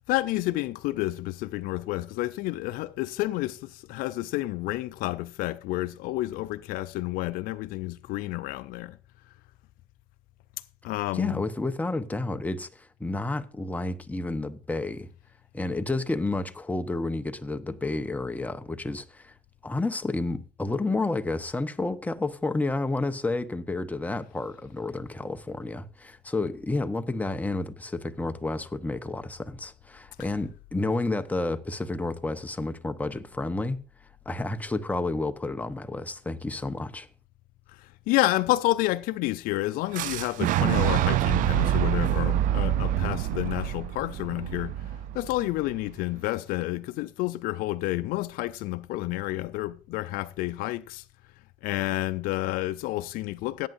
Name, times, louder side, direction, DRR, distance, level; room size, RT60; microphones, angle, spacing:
voice 1, 0.1-9.0 10.8-11.4 37.8-44.8 45.1-51.0 51.6-53.7, left 17 dB, 75° left, 0.5 m, -30 dB
voice 2, 11.1-15.1 15.5-19.3 19.6-33.8 34.2-37.1, left 2 dB, 10° left, 0.9 m, -30 dB
Boom, 39.9-45.8, right 12 dB, 65° right, 0.5 m, -26 dB
17.0 x 9.0 x 2.6 m
supercardioid pair, 85°, 15 cm